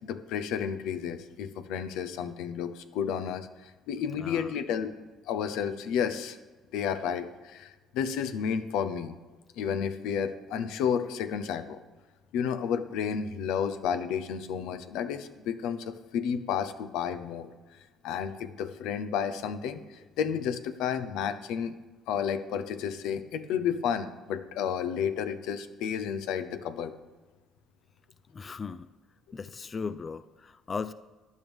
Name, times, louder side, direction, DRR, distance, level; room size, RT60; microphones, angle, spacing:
voice 1, 0.0-4.9 5.3-6.4 6.7-9.1 9.6-11.8 12.3-17.5 18.0-21.7 22.1-26.9, left 7 dB, 90° left, 11 dB, 0.8 m, -31 dB
voice 2, 4.2-4.5 5.0-5.1 28.3-28.9 29.3-30.9, left 5 dB, 30° left, 14 dB, 0.3 m, -37 dB
15.0 x 10.5 x 3.5 m, 1.2 s
cardioid pair, 130°, 0 cm